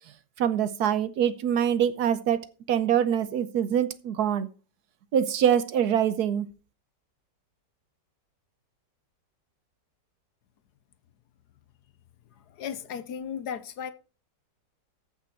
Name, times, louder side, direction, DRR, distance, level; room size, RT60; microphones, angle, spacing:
voice 1, 0.4-2.4 2.7-4.5 5.1-6.5, right 9 dB, 65° right, 1.2 m, -24 dB
voice 2, 12.5-13.9, left 8 dB, 70° left, 1.3 m, -35 dB
14.5 x 6.1 x 4.4 m
omnidirectional pair, 1.9 m